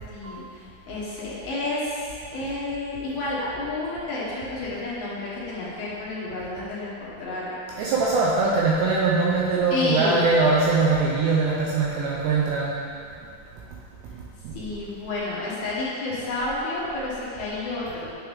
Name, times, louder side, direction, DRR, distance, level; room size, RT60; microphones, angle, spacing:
voice 1, 0.1-7.5 8.4-8.5 9.7-10.2 14.5-18.1, left 2 dB, 65° left, -8 dB, 2.6 m, -30 dB
voice 2, 7.7-12.8 14.4-14.6, right 3 dB, 85° right, -4 dB, 2.4 m, -22 dB
8.9 x 7.0 x 3.5 m, 2.5 s
omnidirectional pair, 5.7 m